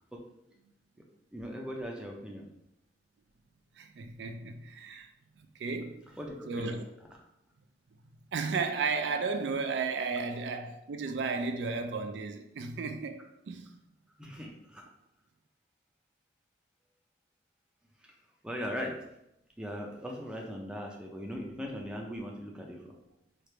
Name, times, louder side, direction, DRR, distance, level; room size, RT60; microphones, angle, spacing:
voice 1, 1.3-2.5 6.2-6.8 14.2-14.8 18.4-19.0 19.6-23.0, equal, 5° right, 0.5 m, -39 dB
voice 2, 3.8-5.1 5.6-6.1 6.5-6.8 8.3-13.7, right 4 dB, 80° right, 0.4 m, -34 dB
3.2 x 2.5 x 4.3 m
head